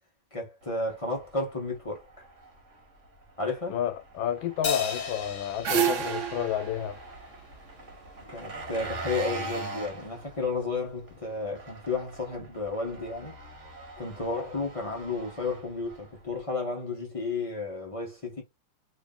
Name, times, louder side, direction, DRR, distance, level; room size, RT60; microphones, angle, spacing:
voice 1, 0.3-2.1 3.4-3.8 7.8-7.9 8.2-13.4 14.0-18.4, left 3 dB, 35° left, 0.5 m, -32 dB
Engine, 0.6-16.4, right 2 dB, 45° right, 1.3 m, -43 dB
voice 2, 3.7-7.0, left 10 dB, 85° left, 1.5 m, -31 dB
Crash cymbal, 4.6-7.3, left 6 dB, 65° left, 1.3 m, -34 dB
sound 1, 5.2-8.3, right 8 dB, 75° right, 0.7 m, -30 dB
3.1 x 2.6 x 3.6 m
omnidirectional pair, 2.0 m